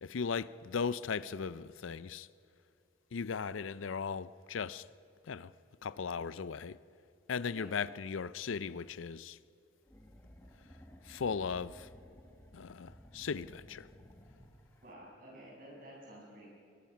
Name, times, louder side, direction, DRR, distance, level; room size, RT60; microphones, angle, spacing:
voice 1, 0.0-2.3 3.1-4.9 5.3-5.5 5.8-6.8 7.3-9.4 11.0-11.9 12.5-13.9, left 5 dB, 85° left, 0.5 m, -37 dB
sound 1, 9.8-15.1, equal, 10° left, 1.6 m, -56 dB
voice 2, 14.8-16.5, right 1 dB, 45° right, 7.2 m, -51 dB
22.0 x 21.0 x 5.8 m
head